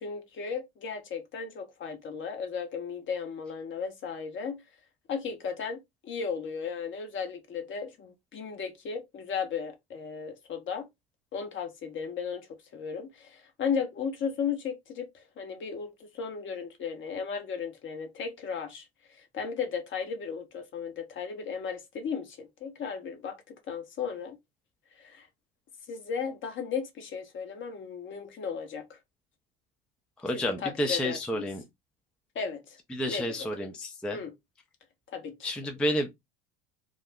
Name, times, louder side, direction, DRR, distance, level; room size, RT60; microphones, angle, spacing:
voice 1, 0.0-4.6 5.1-10.9 11.3-12.5 12.7-18.9 19.1-24.4 25.0-25.3 25.9-29.0 30.3-31.4 32.3-32.8 33.1-33.2 34.1-34.3 35.1-35.5, left 6 dB, 40° left, 0.9 m, -35 dB
voice 2, 30.2-31.6 32.9-34.2 35.4-36.1, left 1 dB, 5° left, 0.4 m, -30 dB
2.4 x 2.1 x 3.4 m
hypercardioid pair, 90°, 31 cm